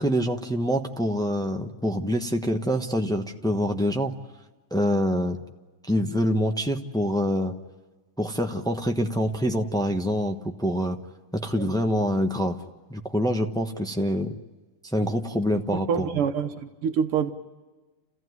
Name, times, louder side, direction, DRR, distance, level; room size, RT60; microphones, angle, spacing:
voice 1, 0.0-4.1 4.7-5.4 5.8-7.6 8.2-11.0 11.3-12.6 12.9-14.3 14.9-16.2, equal, 5° left, 0.6 m, -25 dB
voice 2, 15.9-17.3, right 7 dB, 80° right, 1.9 m, -26 dB
29.5 x 15.5 x 9.6 m
omnidirectional pair, 2.4 m